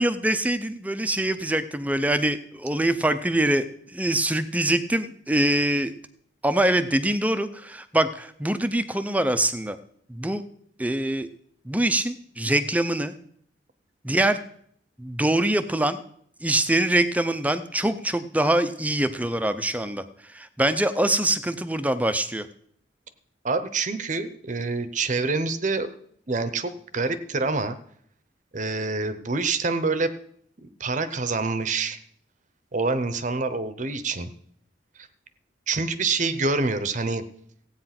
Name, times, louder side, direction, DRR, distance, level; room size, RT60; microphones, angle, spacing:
voice 1, 0.0-5.9 6.4-9.8 10.1-10.4 10.8-11.3 11.6-13.1 14.0-14.4 15.0-16.0 16.4-22.5, right 1 dB, 10° right, 11 dB, 0.6 m, -24 dB
voice 2, 23.4-25.9 26.3-27.8 28.5-30.1 30.6-32.0 32.7-34.3 35.0-35.1 35.7-37.2, right 3 dB, 40° right, 12 dB, 0.8 m, -26 dB
15.5 x 8.8 x 5.9 m, 0.66 s
head